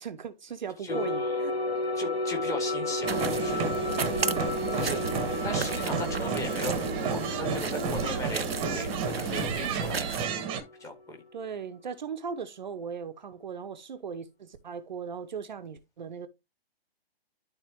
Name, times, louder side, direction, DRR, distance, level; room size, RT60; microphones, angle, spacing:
voice 1, 0.0-1.6 3.9-4.4 4.7-5.1 9.5-10.0 11.3-16.3, right 6 dB, 50° right, 0.9 m, -38 dB
voice 2, 0.8-1.3 2.0-3.7 4.7-5.0 5.4-10.5 10.8-11.2, left 2 dB, 10° left, 2.1 m, -38 dB
sound 1, 0.9-10.8, left 2 dB, 85° left, 1.9 m, -33 dB
sound 2, 3.0-10.6, right 5 dB, 15° right, 1.3 m, -32 dB
sound 3, 3.1-10.3, right 6 dB, 75° right, 0.7 m, -35 dB
12.0 x 4.3 x 2.9 m
figure-of-eight pair, 125°, 30 cm